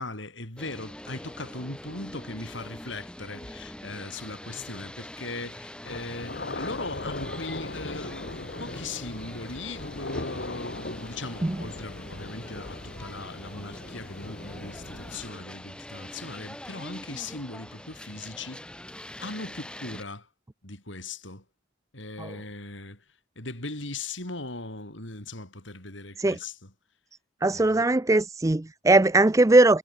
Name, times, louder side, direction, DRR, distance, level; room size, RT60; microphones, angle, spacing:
voice 1, 0.0-18.7 19.2-20.3 20.6-21.4 21.9-23.0 23.4-26.7 27.5-27.8, left 2 dB, 80° left, 7.3 m, -39 dB
sound 1, 0.6-20.0, left 1 dB, 5° left, 1.8 m, -44 dB
sound 2, 5.8-15.3, left 2 dB, 55° left, 1.5 m, -39 dB
voice 2, 27.4-29.8, right 2 dB, 15° right, 0.5 m, -20 dB
head